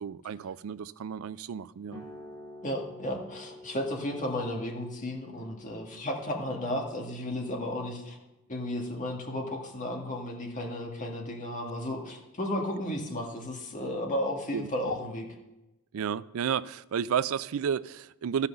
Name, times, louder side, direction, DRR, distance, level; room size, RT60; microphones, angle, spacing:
voice 1, 0.0-2.1 14.5-14.7 15.9-18.5, right 7 dB, 70° right, 0.4 m, -32 dB
sound 1, 1.9-9.1, left 1 dB, 20° left, 2.2 m, -50 dB
voice 2, 2.6-8.2 8.5-15.3, left 1 dB, 35° left, 1.7 m, -33 dB
13.5 x 5.7 x 6.7 m
head